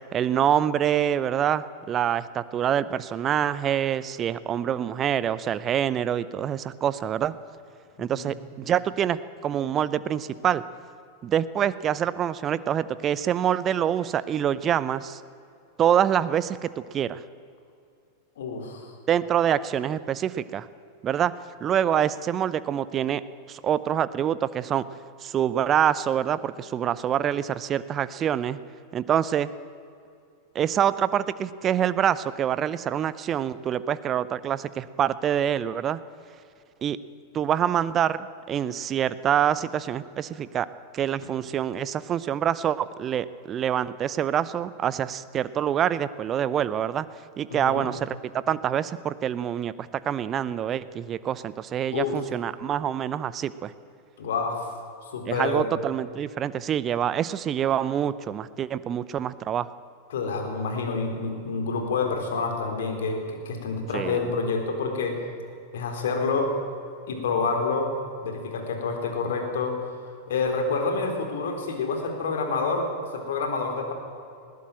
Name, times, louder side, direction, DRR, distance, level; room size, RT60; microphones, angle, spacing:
voice 1, 0.1-7.3 8.0-10.6 11.2-15.2 15.8-17.2 19.1-20.7 21.0-21.3 21.6-23.2 23.5-24.8 25.2-28.6 28.9-29.5 30.5-36.0 36.8-37.0 37.3-40.7 40.9-47.1 47.4-48.2 48.5-53.7 55.3-59.7 63.9-64.3, right 9 dB, 30° right, 16 dB, 0.7 m, -26 dB
voice 2, 8.0-8.3 18.4-18.9 47.5-47.8 51.9-52.2 54.2-54.7 55.1-55.6 60.1-65.2 65.7-66.5 67.1-67.9 68.2-69.9 70.3-73.9, left 4 dB, 60° left, 4 dB, 4.0 m, -28 dB
20.0 x 17.0 x 8.9 m, 2.5 s
figure-of-eight pair, 90°, 0 cm